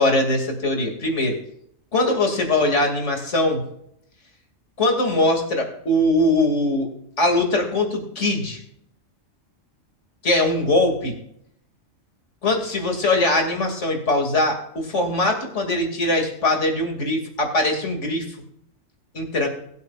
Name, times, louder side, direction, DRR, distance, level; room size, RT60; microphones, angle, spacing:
voice 1, 0.0-1.4 1.9-3.6 4.8-6.9 7.2-8.6 10.2-11.1 12.4-18.3 19.1-19.5, left 2 dB, 65° left, 2 dB, 2.8 m, -21 dB
22.0 x 8.3 x 2.5 m, 0.73 s
omnidirectional pair, 1.4 m